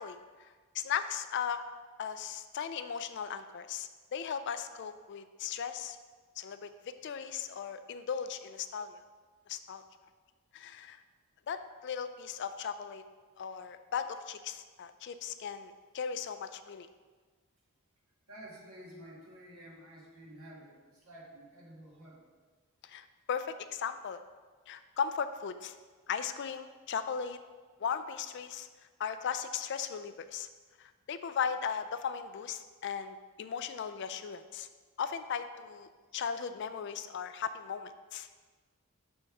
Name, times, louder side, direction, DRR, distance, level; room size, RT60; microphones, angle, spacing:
voice 1, 0.0-1.6 2.0-6.0 6.4-6.7 7.0-9.0 9.5-9.8 10.5-11.0 11.5-13.0 13.4-16.9 22.8-24.2 24.7-25.7 26.1-27.4 27.8-28.7 29.0-30.5 30.8-34.7 35.0-38.3, left 7 dB, 50° left, 11 dB, 0.3 m, -37 dB
voice 2, 18.3-22.2, right 1 dB, 75° right, -4 dB, 1.8 m, -51 dB
6.5 x 4.4 x 4.7 m, 1.4 s
head